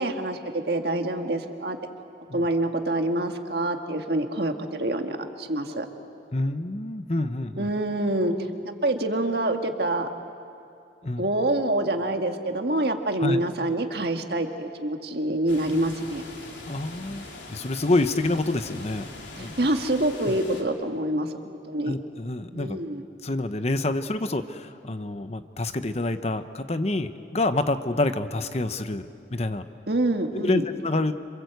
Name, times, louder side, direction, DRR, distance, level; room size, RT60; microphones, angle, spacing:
voice 1, 0.0-1.8 2.3-5.9 7.6-10.1 11.2-16.2 19.4-22.0 22.5-23.0 29.9-30.6, right 1 dB, 60° right, 5 dB, 1.8 m, -26 dB
voice 2, 6.3-7.7 11.0-11.3 13.2-13.4 16.7-19.1 19.4-19.7 20.3-20.4 21.9-22.8 23.2-29.7 30.4-31.1, left 2 dB, 35° left, 10 dB, 0.9 m, -27 dB
sound 1, 15.5-20.6, left 2 dB, 75° left, 3.7 m, -42 dB
27.5 x 26.5 x 8.1 m, 2.5 s
head